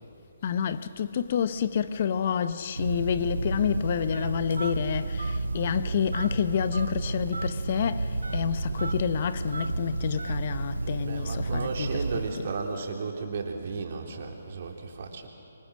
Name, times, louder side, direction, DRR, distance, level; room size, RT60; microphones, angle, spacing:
voice 1, 0.4-12.5, left 8 dB, 45° left, 0.9 m, -29 dB
Telephone, 2.8-12.5, right 2 dB, 85° right, 0.8 m, -31 dB
voice 2, 10.8-15.3, right 4 dB, 50° right, 3.6 m, -34 dB
26.5 x 24.5 x 6.4 m
figure-of-eight pair, 145°, 0 cm